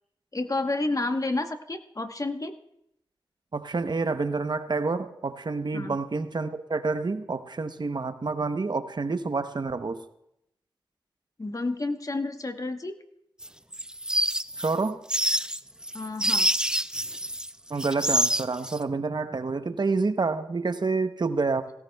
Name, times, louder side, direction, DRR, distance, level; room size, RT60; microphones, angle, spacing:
voice 1, 0.3-2.5 5.7-6.0 11.4-12.9 15.9-16.5, left 2 dB, 40° left, 7 dB, 1.1 m, -30 dB
voice 2, 3.5-10.0 14.6-15.0 17.7-21.7, right 4 dB, 55° right, 10 dB, 0.8 m, -28 dB
sound 1, 13.4-17.5 17.8-18.8, right 1 dB, 10° right, 0.5 m, -27 dB
17.0 x 17.0 x 2.3 m, 0.78 s
cardioid pair, 45°, 9 cm